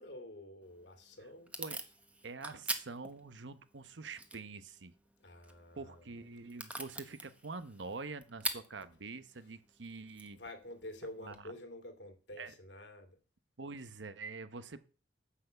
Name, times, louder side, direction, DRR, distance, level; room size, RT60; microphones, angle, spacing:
voice 1, 0.0-1.5 5.2-6.2 10.3-13.2, left 1 dB, 70° left, 2.5 m, -49 dB
Packing tape duct tape / Tearing, 0.6-11.4, right 2 dB, 10° right, 1.1 m, -46 dB
voice 2, 2.2-4.9 5.8-10.4 11.2-11.4 12.4-12.5 13.6-14.8, right 3 dB, 85° right, 0.9 m, -45 dB
9.7 x 5.7 x 8.0 m
head